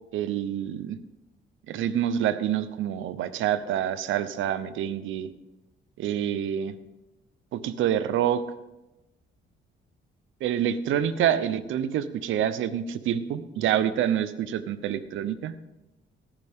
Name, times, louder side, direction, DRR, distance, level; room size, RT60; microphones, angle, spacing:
voice 1, 0.1-1.0 1.7-5.3 6.0-6.8 7.5-8.4 10.4-15.5, right 10 dB, 80° right, 14 dB, 0.8 m, -27 dB
17.5 x 10.0 x 3.7 m, 0.99 s
cardioid pair, 90°, 20 cm